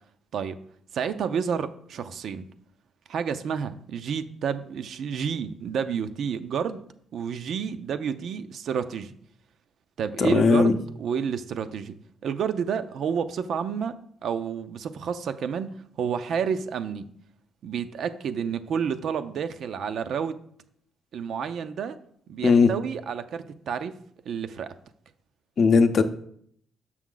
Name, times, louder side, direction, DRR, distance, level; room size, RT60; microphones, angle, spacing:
voice 1, 0.9-2.4 3.1-6.8 7.1-9.1 10.0-12.0 12.2-15.7 16.0-17.1 17.6-20.3 21.1-21.9 22.3-23.9 24.2-24.7, right 7 dB, 65° right, 10 dB, 0.5 m, -30 dB
voice 2, 10.2-10.8 22.4-22.7 25.6-26.0, left 4 dB, 55° left, 9 dB, 0.6 m, -18 dB
6.2 x 6.1 x 3.8 m, 0.65 s
cardioid pair, 90°, 0 cm